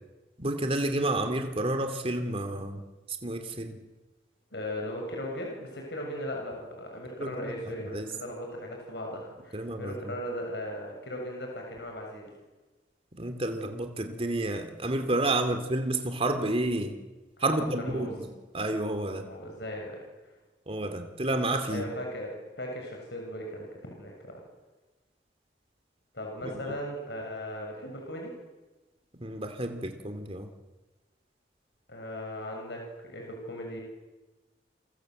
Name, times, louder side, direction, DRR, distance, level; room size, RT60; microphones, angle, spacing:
voice 1, 0.4-3.8 7.2-8.1 9.5-10.1 13.2-17.0 17.4-19.2 20.7-21.9 26.4-26.7 29.2-30.5, right 2 dB, 35° right, 7 dB, 2.7 m, -30 dB
voice 2, 4.5-12.3 17.4-17.6 17.8-18.1 19.1-20.1 21.7-24.4 26.1-28.3 31.9-33.8, equal, 70° left, 1 dB, 7.2 m, -38 dB
29.0 x 25.5 x 8.0 m, 1.2 s
head